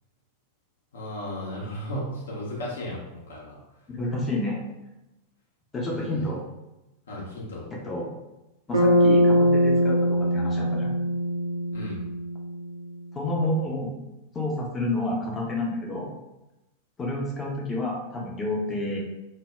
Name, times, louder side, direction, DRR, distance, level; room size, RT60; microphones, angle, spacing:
voice 1, 0.9-3.6 5.8-6.3 7.1-7.7 11.7-12.0, equal, 65° left, -3 dB, 0.7 m, -35 dB
voice 2, 3.9-4.7 5.7-6.4 7.8-8.1 8.7-10.9 13.1-13.9 14.3-16.1 17.0-19.0, left 1 dB, 20° left, -3 dB, 0.6 m, -29 dB
Bass guitar, 8.7-12.8, equal, 75° right, 0.4 m, -22 dB
2.1 x 2.0 x 3.4 m, 0.95 s
figure-of-eight pair, 90°, 0 cm